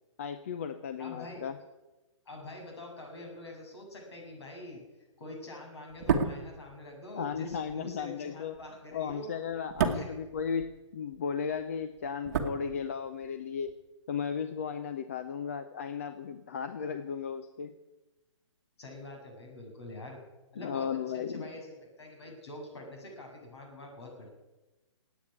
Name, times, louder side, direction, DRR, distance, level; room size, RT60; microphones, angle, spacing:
voice 1, 0.2-1.6 7.2-8.6 8.9-13.7 14.1-17.8 20.6-21.5, left 7 dB, 25° left, 10 dB, 0.5 m, -35 dB
voice 2, 1.0-1.5 2.3-4.8 5.2-9.3 9.9-10.2 18.8-20.2 20.5-24.3, left 1 dB, 55° left, 1 dB, 7.4 m, -45 dB
sound 1, 5.9-11.2 11.5-13.3 13.6-13.7, right 6 dB, 30° right, 1.5 m, -34 dB
15.5 x 9.1 x 9.8 m, 1.1 s
hypercardioid pair, 175°, 16 cm